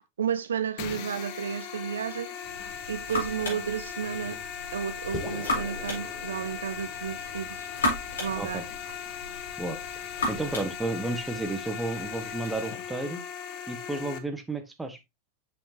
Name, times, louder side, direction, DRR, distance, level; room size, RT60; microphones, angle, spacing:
voice 1, 0.2-2.3 2.9-4.4 4.7-7.7 8.2-8.6, right 8 dB, 65° right, 0.4 m, -32 dB
sound 1, 0.8-14.2, left 8 dB, 45° left, 1.0 m, -38 dB
sound 2, 2.4-12.6, left 2 dB, 65° left, 4.1 m, -36 dB
sound 3, 5.1-9.5, left 2 dB, 15° left, 1.4 m, -43 dB
voice 2, 10.3-13.2 13.7-15.0, right 2 dB, 10° right, 1.3 m, -32 dB
7.1 x 5.9 x 2.8 m
figure-of-eight pair, 90°, 0 cm